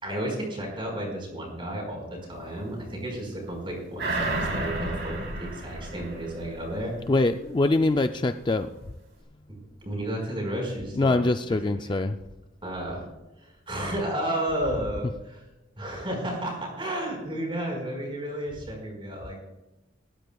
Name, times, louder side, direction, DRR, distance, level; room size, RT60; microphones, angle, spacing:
voice 1, 0.0-7.0 9.5-11.2 11.5-11.9 12.6-13.0 13.4-15.4 15.8-19.4, right 1 dB, 25° right, 0 dB, 4.8 m, -32 dB
sound 1, 4.0-6.9 7.3-7.4, right 2 dB, 60° right, 3.5 m, -31 dB
voice 2, 7.1-8.7 11.0-12.2, left 2 dB, 25° left, 8 dB, 0.3 m, -23 dB
20.0 x 14.5 x 2.3 m, 1.0 s
head